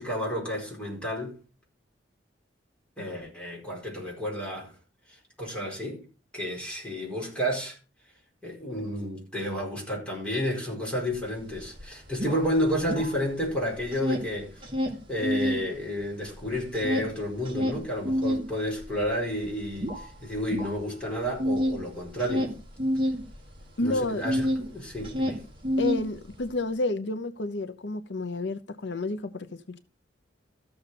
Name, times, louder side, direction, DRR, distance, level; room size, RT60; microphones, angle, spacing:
voice 1, 0.0-1.4 3.0-4.7 5.1-6.0 6.3-7.8 8.4-14.6 15.1-22.5 23.8-25.4, equal, 5° left, 4.5 m, -31 dB
sound 1, 11.2-11.3 11.5-13.5 13.8-15.7 16.0-24.7 25.0-26.5, equal, 25° right, 1.8 m, -29 dB
voice 2, 23.8-24.2 25.8-29.8, left 2 dB, 65° left, 0.8 m, -30 dB
13.5 x 6.8 x 4.2 m
head